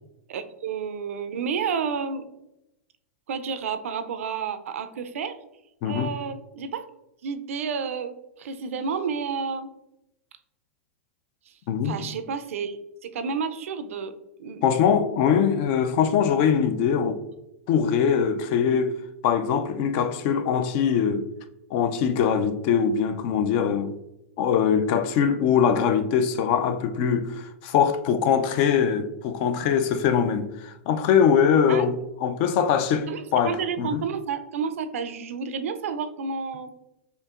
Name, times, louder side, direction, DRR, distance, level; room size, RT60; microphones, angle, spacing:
voice 1, 0.3-2.3 3.3-5.4 5.8-6.9 7.2-9.7 11.5-11.6 11.8-14.1 14.4-14.6 31.7-31.9 33.1-36.7, right 6 dB, 75° right, 0.4 m, -30 dB
voice 2, 5.8-6.1 11.7-12.0 14.6-17.2 17.7-18.9 19.2-21.3 21.7-23.9 24.4-31.9 32.2-34.0, left 7 dB, 50° left, 0.4 m, -22 dB
4.4 x 2.8 x 2.4 m
hypercardioid pair, 115°, 7 cm